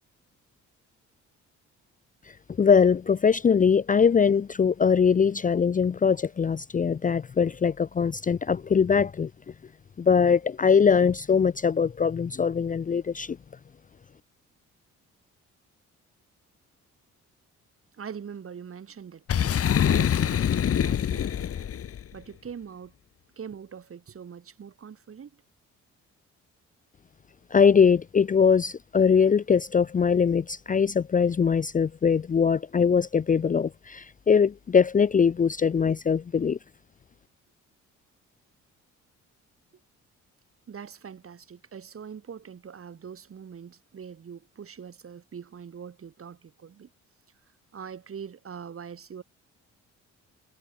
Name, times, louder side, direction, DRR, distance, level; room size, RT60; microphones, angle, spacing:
voice 1, 2.3-9.3 10.0-13.4 27.5-36.6, left 6 dB, 25° left, 0.5 m, -22 dB
voice 2, 17.9-21.7 22.1-22.9 23.4-25.4 40.7-46.9 47.7-49.2, right 7 dB, 45° right, 4.8 m, -43 dB
Boom, 19.3-22.0, left 9 dB, 50° left, 1.3 m, -24 dB
cardioid pair, 90°, 30 cm